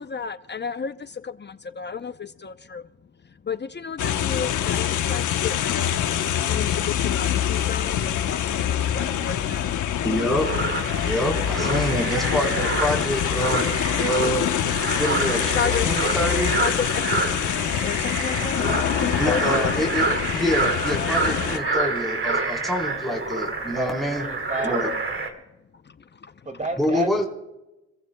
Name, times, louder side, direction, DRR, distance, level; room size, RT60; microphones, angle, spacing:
voice 1, 0.0-2.8 3.4-6.0 6.5-9.6 10.0-10.4 15.5-16.1 16.6-16.7 17.3-17.4 17.8-18.7 19.0-19.9 26.2-26.3, left 6 dB, 35° left, 0.7 m, -32 dB
sound 1, 4.0-21.6, left 10 dB, 80° left, 1.1 m, -25 dB
voice 2, 10.0-10.5 11.0-13.6 14.0-14.4 15.0-16.5 19.2-20.1 20.3-24.2 24.6-24.9 26.8-27.3, equal, ahead, 4.0 m, -26 dB
sound 2, 10.4-25.3, right 3 dB, 40° right, 2.5 m, -28 dB
voice 3, 23.7-24.8 26.5-27.2, right 2 dB, 25° right, 2.3 m, -31 dB
28.5 x 15.0 x 2.3 m
cardioid pair, 65°, 30 cm